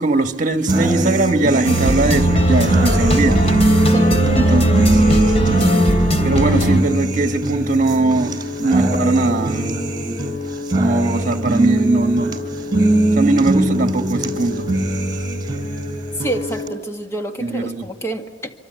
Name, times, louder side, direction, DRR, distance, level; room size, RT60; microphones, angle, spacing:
voice 1, 0.0-3.4 4.3-5.0 6.2-9.8 10.8-12.3 13.2-14.7 17.4-17.8, right 2 dB, 45° right, 1.5 m, -20 dB
sound 1, 0.7-16.7, right 1 dB, 25° right, 4.1 m, -21 dB
sound 2, 1.6-6.8, right 1 dB, 35° left, 3.2 m, -17 dB
voice 2, 16.2-18.5, right 1 dB, 15° left, 1.8 m, -27 dB
26.0 x 25.5 x 8.2 m
head